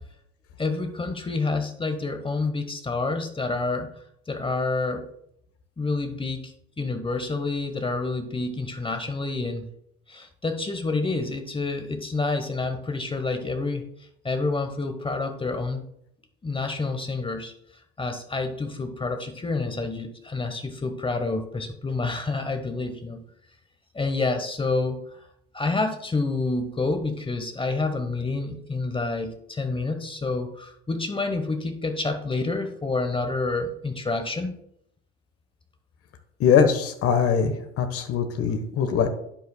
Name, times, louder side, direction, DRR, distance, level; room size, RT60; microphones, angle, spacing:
voice 1, 0.6-4.0 4.3-5.1 5.8-9.7 10.1-13.8 14.2-15.8 16.4-17.5 18.0-23.2 23.9-25.2 25.5-34.6, left 3 dB, 15° left, 6 dB, 1.1 m, -28 dB
voice 2, 36.4-39.1, left 7 dB, 50° left, 7 dB, 1.3 m, -22 dB
11.5 x 9.3 x 2.3 m, 0.73 s
hypercardioid pair, 70°, 30 cm